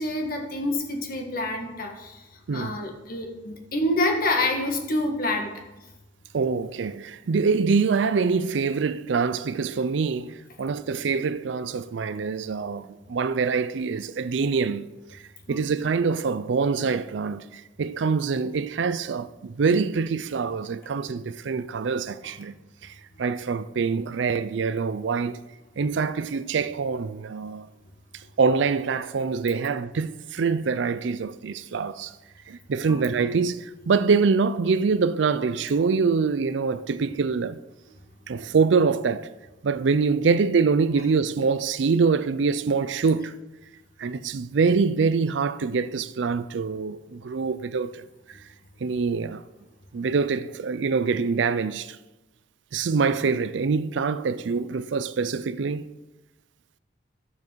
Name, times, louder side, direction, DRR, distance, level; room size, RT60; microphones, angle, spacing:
voice 1, 0.0-2.2 2.5-5.5 15.5-15.6 32.9-33.0, left 1 dB, 50° left, 1.7 m, -27 dB
voice 2, 6.3-15.2 15.5-22.5 22.8-25.4 25.8-27.7 28.1-32.1 32.5-37.6 38.3-39.3 39.6-43.4 44.0-48.0 48.3-48.4 48.8-49.4 49.9-52.0 52.7-55.9, right 5 dB, 70° right, 0.4 m, -25 dB
12.0 x 7.3 x 4.6 m
head